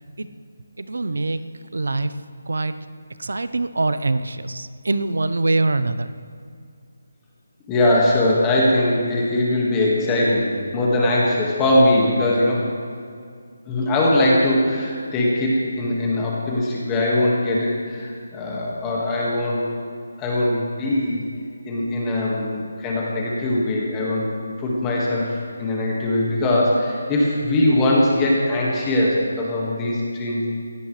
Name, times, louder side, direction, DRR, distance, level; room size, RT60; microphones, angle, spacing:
voice 1, 0.8-1.4 1.7-2.1 2.5-2.8 3.2-6.1, right 2 dB, 85° right, 12 dB, 0.8 m, -23 dB
voice 2, 7.7-12.7 13.7-19.7 20.2-21.2 21.7-24.3 24.6-30.5, left 1 dB, 10° left, -4 dB, 1.9 m, -21 dB
22.5 x 17.0 x 3.3 m, 2.3 s
hypercardioid pair, 175°, 0 cm